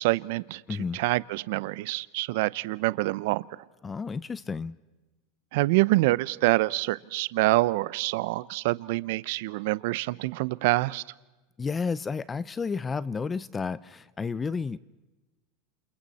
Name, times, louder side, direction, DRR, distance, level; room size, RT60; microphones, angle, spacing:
voice 1, 0.0-0.6 0.9-3.5 5.5-11.0, right 20 dB, 70° right, 0.7 m, -26 dB
voice 2, 0.7-1.0 3.8-4.8 11.6-14.8, left 5 dB, 20° left, 0.7 m, -31 dB
29.0 x 28.0 x 4.3 m
supercardioid pair, 120°, 0 cm